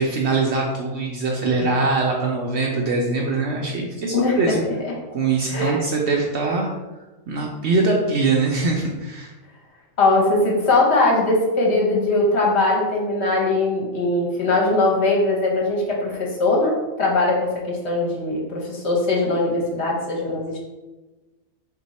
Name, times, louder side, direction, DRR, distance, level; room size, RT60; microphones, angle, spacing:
voice 1, 0.0-4.6 5.1-6.7 7.3-9.3, right 3 dB, 65° right, -1 dB, 0.7 m, -22 dB
voice 2, 5.5-5.8 10.0-20.6, left 2 dB, 55° left, -2 dB, 1.1 m, -20 dB
3.6 x 2.7 x 4.1 m, 1.1 s
omnidirectional pair, 1.5 m